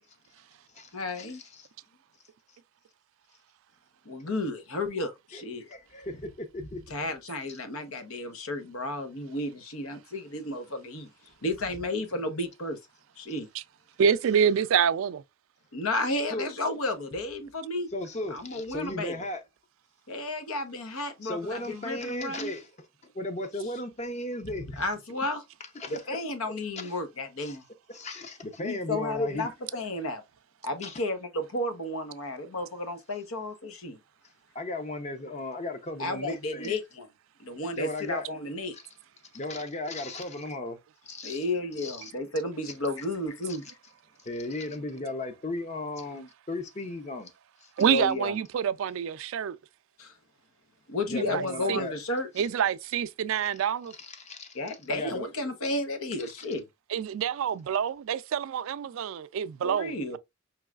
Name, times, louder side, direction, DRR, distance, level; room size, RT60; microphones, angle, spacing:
voice 1, 0.9-1.4 4.1-5.7 6.9-11.1 11.4-12.8 13.2-13.5 15.7-17.9 18.3-19.2 20.1-22.5 24.8-25.4 25.9-27.6 28.6-30.2 30.6-34.0 36.0-37.1 37.4-38.7 41.2-43.6 47.8-48.3 50.0-50.1 50.9-52.3 54.5-56.6 59.6-60.2, left 2 dB, 85° left, 0.9 m, -32 dB
voice 2, 5.7-7.0 7.5-7.6 16.3-16.5 17.9-19.4 21.2-22.9 23.1-24.8 25.7-26.0 26.8-26.9 27.4-27.6 27.9-29.5 30.8-31.0 34.5-36.8 37.8-38.3 38.7-38.8 39.3-40.8 41.1-41.4 41.8-42.1 44.2-47.3 47.6-47.7 51.1-52.0 54.0-55.3, left 2 dB, 35° left, 0.6 m, -36 dB
voice 3, 14.0-15.2 47.8-49.6 51.2-51.8 52.4-53.9 56.9-60.2, right 7 dB, 70° right, 0.3 m, -27 dB
4.6 x 3.1 x 2.3 m
head